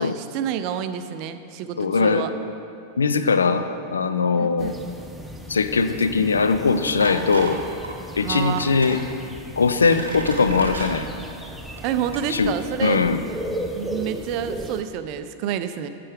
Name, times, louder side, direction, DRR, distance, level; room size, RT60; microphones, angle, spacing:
voice 1, 0.0-2.3 4.4-4.7 8.2-8.9 11.8-13.0 13.7-15.9, right 9 dB, 45° right, 10 dB, 0.4 m, -29 dB
voice 2, 1.8-2.3 3.0-3.6 3.9-4.7 5.5-7.6 8.2-9.0 9.6-11.1 12.3-12.5 12.8-13.2, left 4 dB, 75° left, 10 dB, 0.4 m, -20 dB
sound 1, 4.6-14.8, equal, 5° right, 0.6 m, -36 dB
sound 2, 7.0-7.6 7.8-8.0 8.6-9.0 9.6-10.9 11.6-11.8 12.1-12.2, right 3 dB, 75° right, 0.8 m, -33 dB
9.7 x 7.6 x 3.4 m, 2.5 s
figure-of-eight pair, 90°, 0 cm